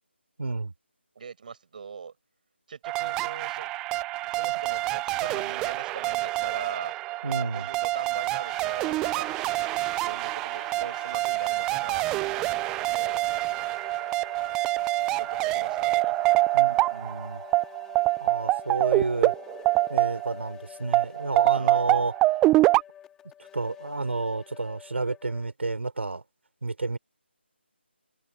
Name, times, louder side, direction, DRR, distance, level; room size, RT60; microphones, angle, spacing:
voice 1, 0.4-0.7 7.2-7.7 16.5-17.4 18.2-19.3 19.9-22.1 23.5-26.2 26.6-27.0, right 3 dB, 75° right, 4.6 m, -30 dB
voice 2, 1.2-2.1 2.7-3.7 4.2-7.0 7.5-12.5 12.9-13.2 14.7-14.9 15.2-16.2 21.5-21.9, right 6 dB, 45° right, 6.7 m, -41 dB
sound 1, 2.8-20.5 20.9-22.8, right 19 dB, 10° right, 0.4 m, -26 dB
sound 2, 8.4-25.5, left 10 dB, 5° left, 3.2 m, -47 dB
open air
figure-of-eight pair, 165°, 6 cm